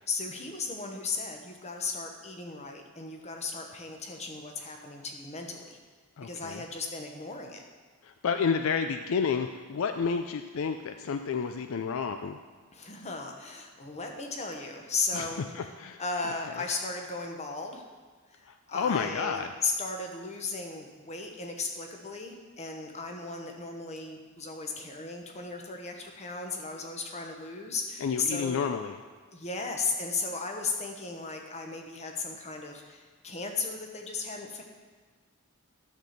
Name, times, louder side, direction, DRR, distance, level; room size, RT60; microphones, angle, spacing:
voice 1, 0.1-5.8 6.2-7.6 12.7-15.7 16.0-17.8 18.3-28.6 29.3-34.6, left 4 dB, 30° left, 3 dB, 1.1 m, -36 dB
voice 2, 6.2-6.6 8.0-12.4 15.1-16.0 18.4-19.5 28.0-29.0, left 6 dB, 65° left, 7 dB, 0.4 m, -30 dB
11.0 x 4.3 x 6.5 m, 1.5 s
head